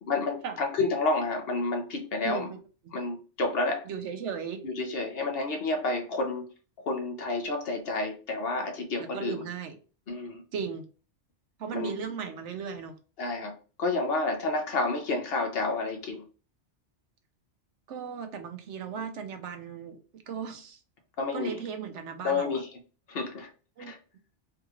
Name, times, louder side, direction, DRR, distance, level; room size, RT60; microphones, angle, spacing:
voice 1, 0.1-2.5 2.9-3.9 4.6-6.4 6.8-9.4 10.1-10.4 11.7-11.9 13.2-16.2 21.2-21.6 22.2-22.7 23.1-23.5 23.9-24.0, left 3 dB, 60° left, 0.9 m, -30 dB
voice 2, 2.2-2.6 2.8-2.9 3.8-4.6 9.0-9.8 10.5-10.9 11.6-13.0 17.9-20.8 21.3-22.6 23.8-23.9, right 6 dB, 80° right, 1.0 m, -36 dB
3.5 x 3.0 x 2.4 m
omnidirectional pair, 1.2 m